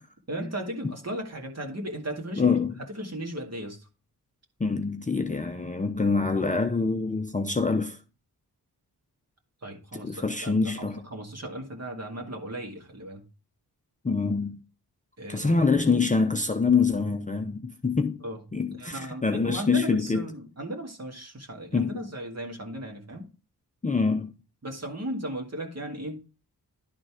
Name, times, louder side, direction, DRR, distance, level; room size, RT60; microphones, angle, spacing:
voice 1, 0.3-3.9 9.6-13.2 15.2-15.7 18.2-18.4 18.7-23.3 24.6-26.2, right 1 dB, 40° right, 2.0 m, -36 dB
voice 2, 2.4-2.7 4.6-8.0 10.0-11.0 14.0-14.6 15.3-18.2 18.5-20.2 21.7-22.0 23.8-24.3, left 4 dB, 20° left, 0.6 m, -25 dB
11.0 x 4.0 x 4.8 m
wide cardioid pair, 85°, 39 cm